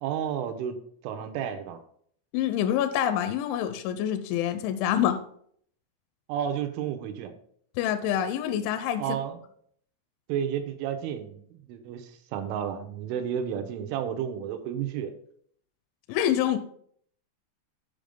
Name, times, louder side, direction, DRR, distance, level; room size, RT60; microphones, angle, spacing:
voice 1, 0.0-0.8 1.0-1.8 6.3-7.3 9.0-9.4 10.3-15.1, right 9 dB, 90° right, 7 dB, 3.2 m, -32 dB
voice 2, 2.3-5.2 7.8-9.0 16.1-16.6, left 10 dB, 85° left, 10 dB, 2.8 m, -26 dB
8.5 x 5.2 x 5.2 m, 0.64 s
omnidirectional pair, 5.6 m